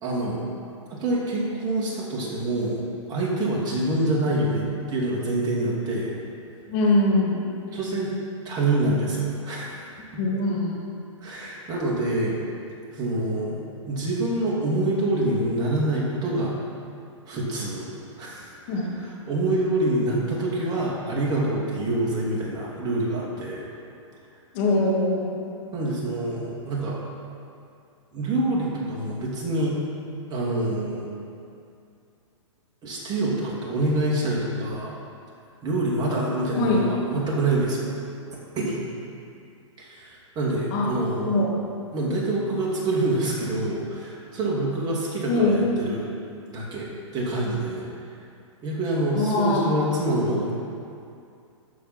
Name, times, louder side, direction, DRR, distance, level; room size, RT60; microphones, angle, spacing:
voice 1, 0.0-0.5 0.9-2.8 3.1-6.2 7.7-8.1 8.4-10.2 11.2-12.4 12.9-16.6 17.3-17.9 18.2-23.6 25.7-27.0 28.1-29.8 30.3-31.1 32.8-35.0 35.6-37.9 38.5-38.8 39.8-41.5 41.9-46.1 46.5-47.9 48.6-50.5, right 1 dB, 25° right, -4 dB, 2.6 m, -26 dB
voice 2, 6.7-7.5 10.2-10.8 18.7-18.9 24.5-25.4 36.6-36.9 40.7-40.9 41.3-41.5 45.3-45.6 49.1-49.7, left 2 dB, 45° left, -3 dB, 2.6 m, -22 dB
13.5 x 4.7 x 6.0 m, 2.5 s
hypercardioid pair, 125°, 17 cm